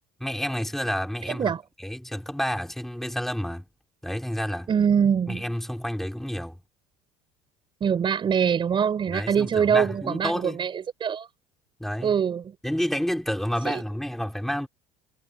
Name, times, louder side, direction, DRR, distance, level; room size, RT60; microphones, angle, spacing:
voice 1, 0.2-1.5 1.8-3.7 4.0-4.7 5.3-6.6 9.1-10.7 11.8-12.2 12.6-14.7, equal, ahead, 4.2 m, -29 dB
voice 2, 1.3-1.6 4.7-5.4 7.8-11.3 12.0-12.5 13.7-13.8, right 7 dB, 35° right, 5.7 m, -24 dB
cardioid pair, 120°, 15 cm